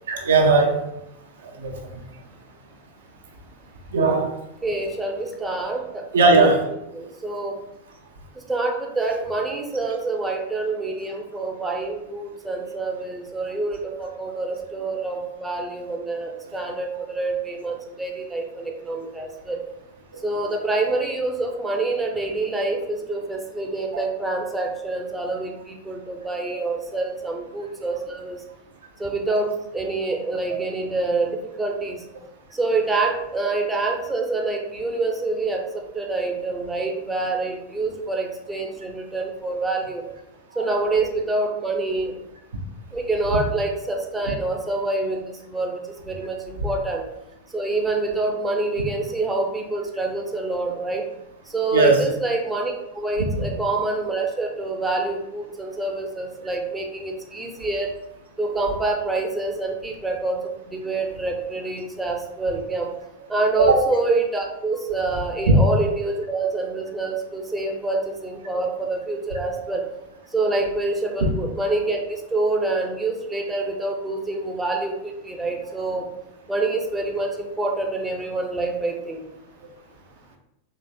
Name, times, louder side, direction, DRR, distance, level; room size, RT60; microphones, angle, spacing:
voice 1, 0.1-0.8 1.6-1.7 3.9-4.3 6.1-6.7 40.6-40.7 51.7-52.0 63.6-63.8 65.5-65.6 71.2-71.3, right 3 dB, 65° right, 2 dB, 0.5 m, -17 dB
voice 2, 4.6-6.0 6.3-6.5 6.9-7.6 8.5-19.6 20.2-28.4 29.0-32.0 32.5-35.6 35.9-40.0 40.6-42.1 42.9-45.2 45.5-47.0 47.5-51.0 51.5-57.9 58.4-62.9 63.3-69.8 70.3-76.1 76.5-79.2, right 3 dB, 10° right, 1 dB, 0.5 m, -26 dB
4.0 x 3.1 x 2.3 m, 0.85 s
figure-of-eight pair, 90°, 0 cm